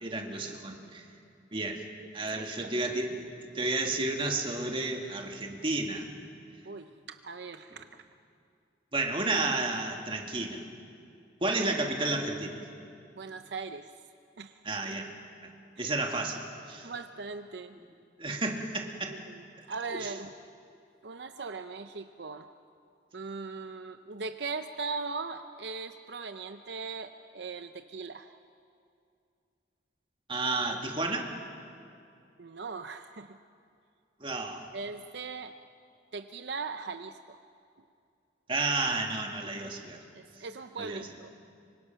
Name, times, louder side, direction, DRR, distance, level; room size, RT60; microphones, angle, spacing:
voice 1, 0.0-1.0 1.5-1.8 2.1-3.3 3.5-6.1 8.9-10.6 11.4-12.6 14.6-15.1 15.8-16.4 16.7-16.9 18.2-19.1 19.9-20.1 30.3-31.3 34.2-34.7 38.5-40.0 40.8-41.0, right 2 dB, 30° right, 2 dB, 2.0 m, -31 dB
voice 2, 6.6-7.9 13.1-13.9 14.4-14.6 15.8-15.9 16.8-17.8 19.1-20.3 21.0-22.5 23.1-28.3 32.4-33.4 34.7-35.6 36.1-37.4 40.1-41.3, right 4 dB, 70° right, 9 dB, 0.7 m, -39 dB
26.0 x 24.5 x 5.8 m, 2.4 s
head